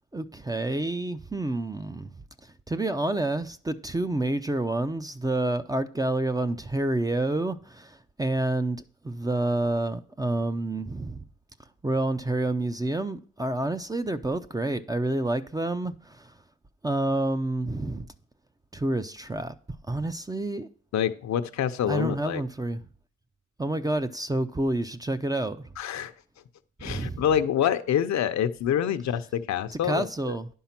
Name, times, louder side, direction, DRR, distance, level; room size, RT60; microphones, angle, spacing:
voice 1, 0.1-2.1 2.7-11.2 11.8-16.4 16.8-18.1 18.7-19.5 19.9-20.7 21.9-22.8 23.6-25.7 26.8-27.2 29.7-30.5, right 2 dB, 10° right, 0.6 m, -28 dB
voice 2, 20.9-22.4 25.8-26.1 26.8-30.4, left 9 dB, 65° left, 0.8 m, -26 dB
10.0 x 5.5 x 5.9 m
cardioid pair, 90°, 30 cm